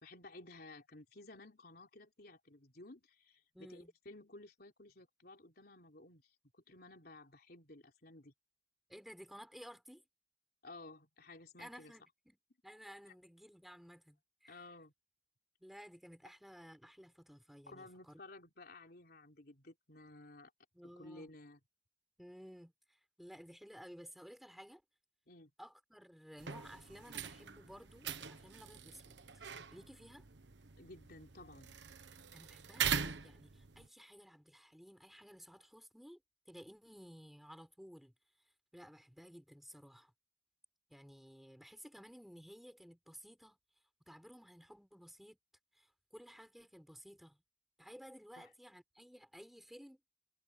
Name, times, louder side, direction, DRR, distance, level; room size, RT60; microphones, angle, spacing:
voice 1, 0.0-8.3 10.6-11.9 13.1-13.2 14.5-14.9 17.7-20.5 20.9-21.6 25.3-25.5 30.8-31.8 48.4-48.5, left 2 dB, 55° left, 3.7 m, -55 dB
voice 2, 3.5-3.9 8.9-10.0 11.6-12.4 12.6-14.6 15.6-18.2 20.7-21.3 22.2-24.8 25.6-29.4 29.7-30.2 32.3-36.2 36.5-38.1 38.7-40.1 40.9-43.6 44.1-45.4 45.7-47.4 47.8-50.0, equal, ahead, 6.8 m, -55 dB
sound 1, 26.4-33.9, right 7 dB, 75° right, 1.2 m, -42 dB
head